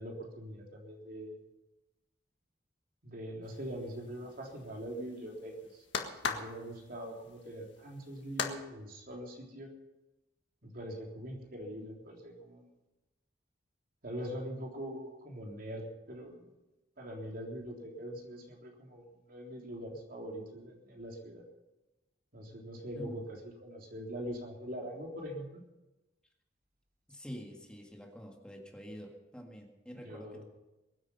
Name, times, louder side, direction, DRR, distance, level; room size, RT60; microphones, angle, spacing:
voice 1, 0.0-1.4 3.0-5.8 6.2-9.7 10.6-12.7 14.0-16.5 17.0-21.4 22.3-25.6 29.9-30.4, equal, 50° right, 0 dB, 3.6 m, -43 dB
sound 1, 3.4-8.6, left 5 dB, 85° left, 1.7 m, -40 dB
voice 2, 27.1-30.4, equal, 5° left, 1 dB, 1.9 m, -47 dB
22.5 x 9.8 x 5.7 m, 1.0 s
head